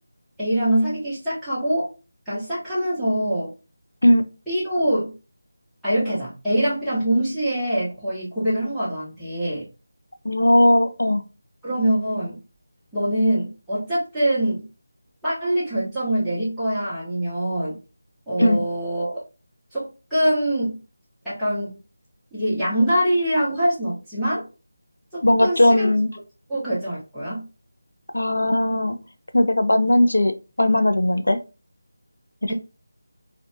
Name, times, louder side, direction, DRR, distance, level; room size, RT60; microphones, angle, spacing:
voice 1, 0.4-1.9 2.3-3.5 4.5-5.1 5.8-9.6 11.6-12.4 12.9-14.7 15.2-17.8 18.3-19.2 19.7-20.8 21.2-21.8 22.3-24.5 25.1-25.9 26.5-27.5 32.5-32.6, right 1 dB, ahead, -16 dB, 0.8 m, -24 dB
voice 2, 10.3-11.2 18.4-18.6 25.2-26.1 28.1-29.0 29.3-30.3 30.6-31.4 32.4-32.5, left 1 dB, 90° left, 8 dB, 0.4 m, -18 dB
2.6 x 2.1 x 2.5 m, 0.31 s
figure-of-eight pair, 170°, 0 cm